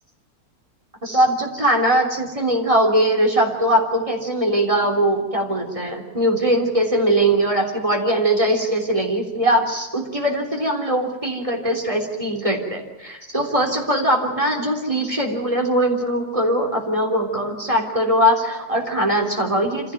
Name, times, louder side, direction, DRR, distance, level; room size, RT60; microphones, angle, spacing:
voice 1, 1.0-19.9, right 1 dB, 20° right, 1 dB, 3.6 m, -21 dB
26.5 x 16.0 x 9.2 m, 1.1 s
omnidirectional pair, 1.6 m